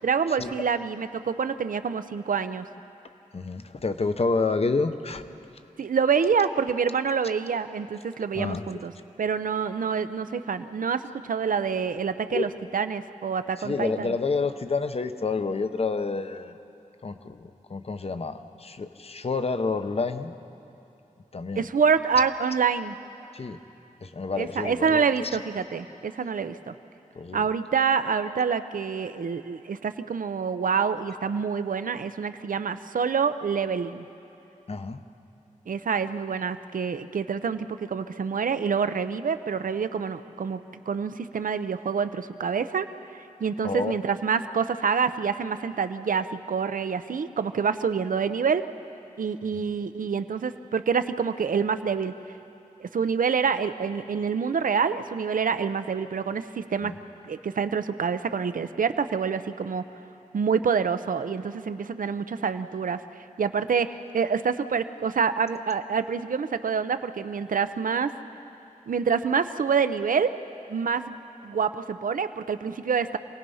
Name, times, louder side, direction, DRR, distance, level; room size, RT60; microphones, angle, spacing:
voice 1, 0.0-2.7 5.8-8.9 9.2-14.1 21.6-22.9 24.4-26.8 27.3-34.1 35.7-40.6 40.9-42.9 43.4-48.6 49.2-52.4 52.8-56.9 57.3-59.8 60.3-68.1 68.9-70.3 70.7-71.1 71.4-73.2, right 6 dB, 80° right, 11 dB, 0.7 m, -27 dB
voice 2, 3.3-5.2 8.3-8.7 12.3-12.5 13.6-16.6 17.0-20.3 21.3-21.7 23.3-23.6 24.0-25.3 27.1-27.5 31.1-31.2 34.7-35.0 43.6-43.9 56.8-57.0, left 4 dB, 45° left, 9 dB, 0.8 m, -29 dB
27.5 x 18.5 x 5.6 m, 3.0 s
wide cardioid pair, 115°, 14 cm